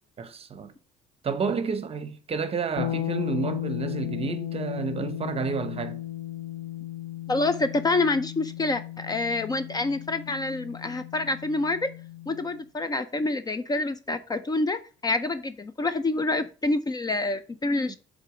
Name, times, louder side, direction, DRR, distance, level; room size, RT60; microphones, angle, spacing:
voice 1, 0.2-0.7 1.2-6.0 17.9-18.0, right 5 dB, 35° right, 0.9 m, -30 dB
sound 1, 2.8-12.5, left 13 dB, 50° left, 0.9 m, -35 dB
voice 2, 7.3-11.9 12.3-18.0, left 2 dB, 25° left, 0.5 m, -27 dB
6.7 x 3.8 x 4.9 m
cardioid pair, 110°, 17 cm